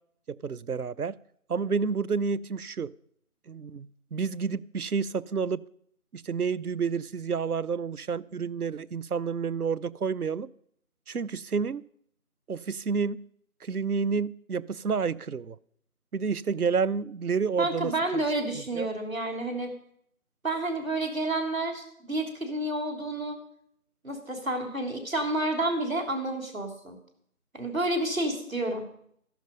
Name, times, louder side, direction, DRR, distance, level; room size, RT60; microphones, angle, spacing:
voice 1, 0.3-1.2 1.5-2.9 3.5-5.6 6.1-10.5 11.1-11.9 12.5-13.3 13.6-15.6 16.1-18.2 18.5-18.9, right 5 dB, 85° right, 0.7 m, -30 dB
voice 2, 17.6-19.7 20.4-23.4 24.0-27.0 27.5-28.9, right 2 dB, 65° right, 3.5 m, -30 dB
13.5 x 11.5 x 5.3 m
figure-of-eight pair, 175°, 44 cm